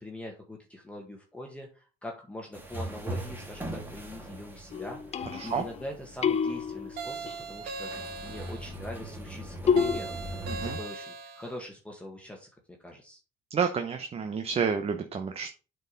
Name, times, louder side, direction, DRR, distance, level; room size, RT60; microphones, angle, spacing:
voice 1, 0.0-12.5 12.8-13.2, left 1 dB, 5° left, 0 dB, 1.7 m, -43 dB
sound 1, 2.5-10.8, right 1 dB, 10° right, 2.4 m, -41 dB
sound 2, 4.7-5.8 6.2-7.4 9.7-10.0, left 6 dB, 40° left, 0.7 m, -28 dB
sound 3, 7.0-8.7 9.8-11.5, right 4 dB, 80° right, 1.7 m, -39 dB
voice 2, 10.5-10.8 13.5-15.5, right 6 dB, 35° right, 6 dB, 1.0 m, -30 dB
7.9 x 4.7 x 5.3 m, 0.34 s
cardioid pair, 110°, 17 cm